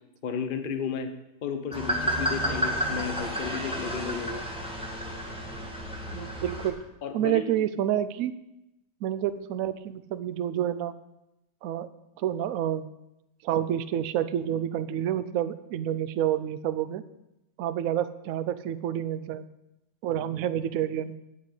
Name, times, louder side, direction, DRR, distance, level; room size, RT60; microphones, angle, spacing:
voice 1, 0.2-1.1 1.4-4.4 7.0-7.6, left 6 dB, 40° left, 7 dB, 0.8 m, -33 dB
sound 1, 1.7-6.7, equal, 5° right, 1.5 m, -31 dB
voice 2, 6.1-6.8 7.1-8.3 9.0-10.9 11.6-11.9 12.2-12.9 13.4-17.0 17.6-19.5 20.0-21.1, right 11 dB, 70° right, 13 dB, 0.8 m, -28 dB
8.4 x 7.5 x 8.0 m, 0.90 s
omnidirectional pair, 2.0 m